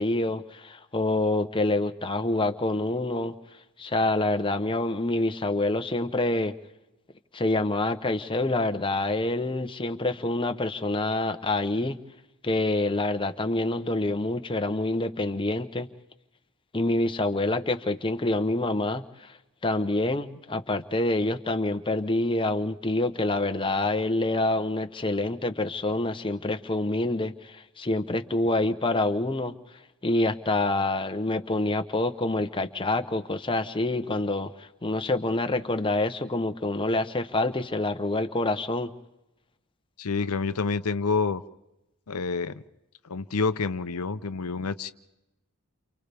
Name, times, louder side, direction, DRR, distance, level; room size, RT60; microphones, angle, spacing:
voice 1, 0.0-3.3 3.8-6.5 7.3-12.0 12.4-15.9 16.7-19.4 19.6-29.5 30.0-38.9, left 2 dB, 25° left, 7 dB, 0.9 m, -27 dB
voice 2, 40.0-41.4 42.1-42.6 43.0-44.9, left 4 dB, 85° left, 12 dB, 0.7 m, -28 dB
29.5 x 28.5 x 3.5 m, 0.95 s
head